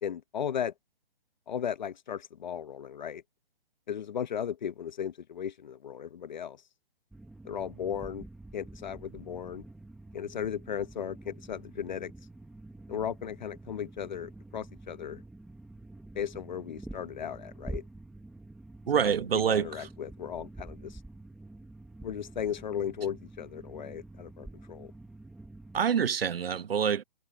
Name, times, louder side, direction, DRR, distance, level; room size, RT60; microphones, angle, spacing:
voice 1, 0.0-0.7 1.5-3.2 3.9-6.6 7.4-8.3 8.5-9.6 10.1-12.1 12.9-15.2 16.1-17.8 18.9-21.0 22.0-24.9, left 8 dB, 50° left, 0.9 m, -36 dB
sound 1, 7.1-25.8, right 2 dB, ahead, 0.6 m, -47 dB
voice 2, 18.9-19.9 25.7-27.0, right 7 dB, 80° right, 1.1 m, -26 dB
hypercardioid pair, 165°, 29 cm